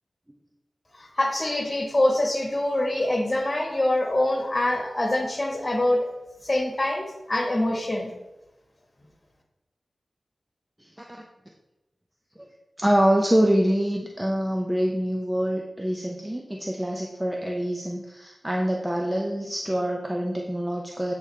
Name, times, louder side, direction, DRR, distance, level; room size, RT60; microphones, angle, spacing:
voice 1, 1.0-6.1 6.4-8.1, left 1 dB, 35° left, 0 dB, 1.3 m, -24 dB
voice 2, 12.8-21.1, equal, 10° right, 1 dB, 0.5 m, -25 dB
8.0 x 3.7 x 3.3 m, 1.0 s
wide cardioid pair, 65°, 0 cm